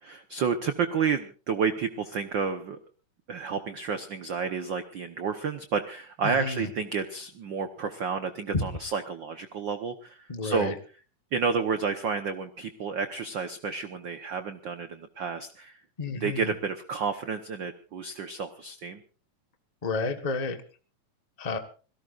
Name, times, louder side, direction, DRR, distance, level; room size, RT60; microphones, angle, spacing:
voice 1, 0.0-2.8 3.3-10.7 11.3-15.8 16.1-19.0, right 5 dB, 60° right, 8 dB, 1.3 m, -30 dB
voice 2, 6.2-6.7 8.5-8.7 10.3-10.7 16.0-16.5 19.8-20.6 21.4-21.6, left 3 dB, 60° left, 6 dB, 0.4 m, -30 dB
26.5 x 18.0 x 2.5 m, 0.37 s
omnidirectional pair, 3.3 m